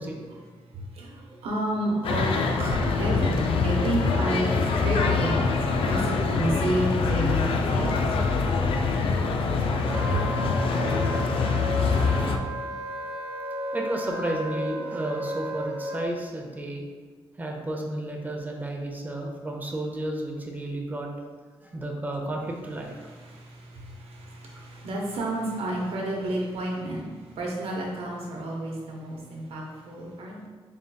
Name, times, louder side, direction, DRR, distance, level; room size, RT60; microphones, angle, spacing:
voice 1, 0.3-2.3 2.6-5.3 5.7-8.0 10.1-10.3 23.0-30.5, right 1 dB, 80° right, -1 dB, 0.8 m, -31 dB
sound 1, 2.0-12.4, left 4 dB, 65° left, 0.4 m, -24 dB
Wind instrument woodwind instrument, 9.9-16.0, right 1 dB, 45° right, 1.1 m, -34 dB
voice 2, 13.7-16.8 17.4-21.1 21.6-23.1, right 1 dB, 20° right, 0 dB, 0.6 m, -32 dB
3.9 x 3.7 x 2.2 m, 1.5 s
cardioid pair, 90°, 10 cm